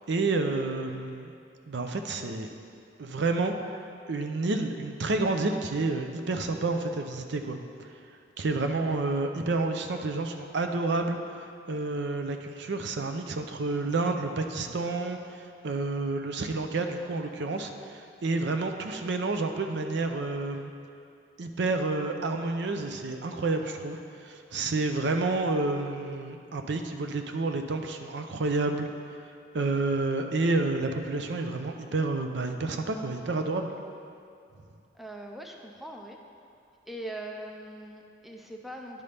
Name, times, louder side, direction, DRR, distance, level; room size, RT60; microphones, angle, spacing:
voice 1, 0.1-1.3 1.7-2.5 3.0-3.5 4.1-7.6 8.4-20.7 21.4-28.9 29.2-33.7, right 3 dB, 65° right, 5 dB, 0.5 m, -29 dB
voice 2, 34.9-36.2 36.9-39.0, right 1 dB, ahead, 1 dB, 0.4 m, -41 dB
10.5 x 5.5 x 3.4 m, 2.5 s
head